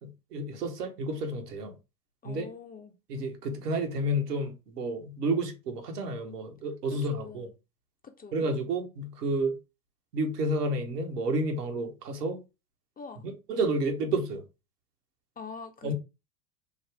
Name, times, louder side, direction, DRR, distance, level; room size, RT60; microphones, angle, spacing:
voice 1, 0.0-1.7 2.2-2.5 3.1-7.5 8.3-9.5 10.1-12.4 13.2-14.4 15.8-15.9, right 1 dB, 80° right, 1.3 m, -30 dB
voice 2, 2.2-2.9 6.9-7.5 8.0-8.5 13.0-13.3 15.4-15.9, left 5 dB, 20° left, 0.7 m, -44 dB
5.5 x 2.2 x 3.4 m
hypercardioid pair, 80°, 46 cm